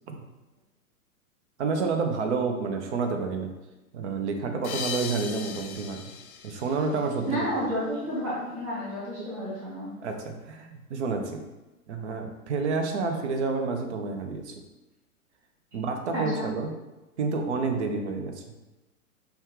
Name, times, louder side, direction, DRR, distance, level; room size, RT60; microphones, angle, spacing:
voice 1, 1.6-3.5 3.9-6.0 6.4-7.5 10.0-11.4 11.9-14.6 15.7-16.7 17.2-18.4, right 4 dB, 55° right, 5 dB, 0.7 m, -29 dB
sound 1, 4.6-7.7, left 6 dB, 75° left, 0.6 m, -38 dB
voice 2, 7.3-9.9 16.1-16.5, equal, 10° right, -7 dB, 0.3 m, -31 dB
5.4 x 2.3 x 3.1 m, 1.1 s
figure-of-eight pair, 115°, 43 cm